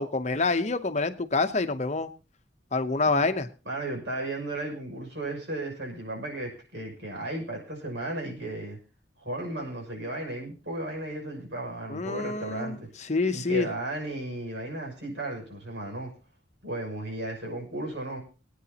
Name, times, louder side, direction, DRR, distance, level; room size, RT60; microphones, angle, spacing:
voice 1, 0.0-2.1 2.7-3.5 11.9-13.7, left 3 dB, 40° left, 9 dB, 0.9 m, -27 dB
voice 2, 3.6-8.8 9.2-12.9 13.3-16.1 16.6-18.2, right 1 dB, 85° right, -1 dB, 6.4 m, -35 dB
24.5 x 9.4 x 2.9 m, 0.34 s
head